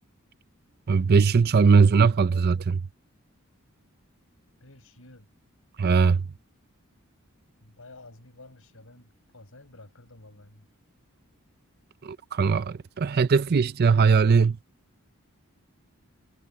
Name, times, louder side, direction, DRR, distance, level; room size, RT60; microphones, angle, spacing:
voice 1, 0.9-2.8 5.8-6.2 12.0-14.6, right 5 dB, 45° right, 0.5 m, -20 dB
voice 2, 1.7-2.5 4.6-5.3 7.6-10.7 13.1-13.6, left 2 dB, 70° left, 7.4 m, -51 dB
head